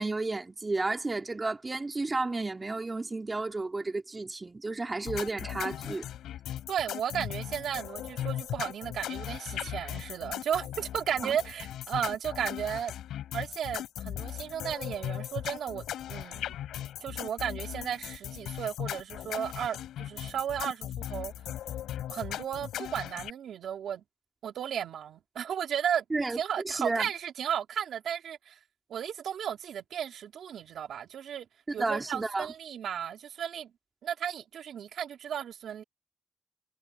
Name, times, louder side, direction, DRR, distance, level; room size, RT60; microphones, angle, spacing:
voice 1, 0.0-6.1 11.2-11.4 26.1-26.4 26.6-27.1 31.8-32.5, right 3 dB, 35° right, 3.2 m, -32 dB
sound 1, 5.0-23.3, left 11 dB, 90° left, 3.3 m, -38 dB
voice 2, 6.7-12.9 13.3-16.5 17.0-21.3 22.1-24.0 24.4-26.0 26.3-28.6 28.9-31.5 31.7-33.7 34.0-35.8, right 9 dB, 80° right, 3.5 m, -34 dB
supercardioid pair, 45°, 0 cm